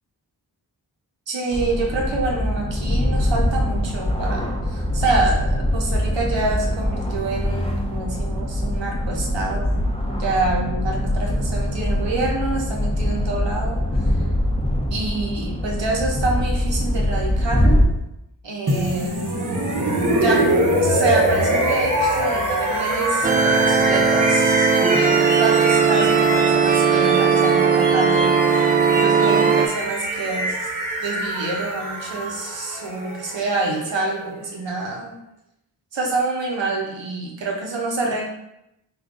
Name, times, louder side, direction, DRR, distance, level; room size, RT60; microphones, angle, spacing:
voice 1, 1.3-14.3 14.9-17.9 18.4-19.3 20.2-20.4 20.7-30.7 31.0-35.2 35.9-38.3, right 3 dB, 80° right, -1 dB, 1.0 m, -27 dB
sound 1, 1.5-17.8, left 1 dB, 15° left, 0.8 m, -23 dB
sound 2, 18.7-34.5, right 1 dB, 45° right, 1.0 m, -24 dB
sound 3, 23.2-29.7, right 6 dB, 20° right, 0.4 m, -18 dB
3.7 x 2.6 x 3.7 m, 0.85 s
cardioid pair, 45°, 43 cm